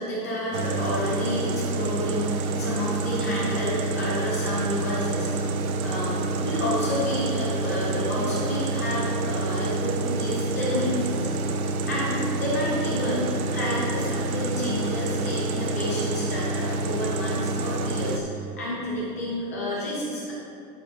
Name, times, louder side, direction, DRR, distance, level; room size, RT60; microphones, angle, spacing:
voice 1, 0.0-5.3 5.8-13.3 13.5-20.3, left 1 dB, 10° left, -6 dB, 0.5 m, -30 dB
sound 1, 0.5-18.2, right 3 dB, 55° right, 0.8 m, -28 dB
13.5 x 6.7 x 2.7 m, 2.7 s
hypercardioid pair, 170°, 50 cm